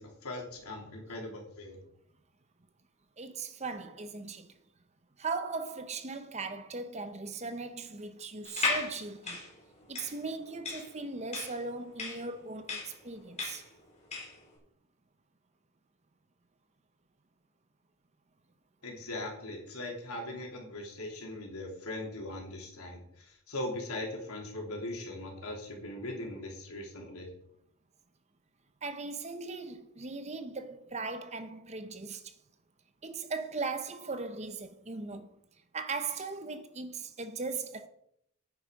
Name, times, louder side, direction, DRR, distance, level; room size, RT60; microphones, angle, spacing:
voice 1, 0.0-1.8 18.8-27.3, left 1 dB, 80° left, 3.5 m, -40 dB
voice 2, 3.2-4.5 5.2-9.4 9.9-13.7 28.8-32.3 33.0-35.3 35.7-37.9, right 4 dB, 30° right, 0.9 m, -38 dB
sound 1, 8.4-14.4, left 3 dB, 30° left, 4.2 m, -36 dB
9.8 x 9.4 x 5.3 m
head